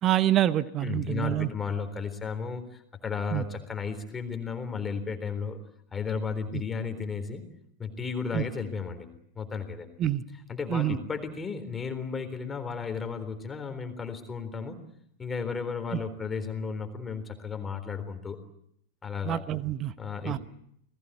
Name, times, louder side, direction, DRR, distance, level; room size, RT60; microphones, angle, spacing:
voice 1, 0.0-1.5 3.3-3.4 6.5-6.6 8.3-8.4 10.0-10.2 10.7-11.0 15.9-16.0 19.2-19.9 20.2-20.4, right 12 dB, 30° right, 15 dB, 1.2 m, -26 dB
voice 2, 0.8-5.6 5.9-7.4 7.8-9.1 9.4-9.9 10.5-14.8 15.2-18.4 19.0-19.4 20.0-20.4, left 5 dB, 15° left, 8 dB, 3.9 m, -34 dB
29.5 x 19.5 x 8.5 m, 0.73 s
figure-of-eight pair, 90°, 0 cm